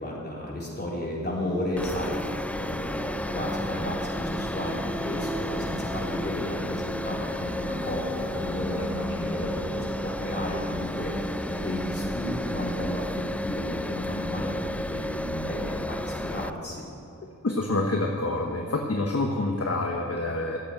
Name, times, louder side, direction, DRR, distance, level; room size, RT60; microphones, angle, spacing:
voice 1, 0.0-13.0 13.4-16.9, left 1 dB, 30° left, -5 dB, 4.1 m, -33 dB
sound 1, 1.1-14.7, right 1 dB, 10° right, 1.5 m, -38 dB
sound 2, 1.8-16.5, left 1 dB, 5° left, 0.3 m, -33 dB
voice 2, 17.4-20.6, left 2 dB, 50° left, 2 dB, 1.1 m, -27 dB
13.5 x 8.3 x 8.9 m, 2.9 s
wide cardioid pair, 70°, 32 cm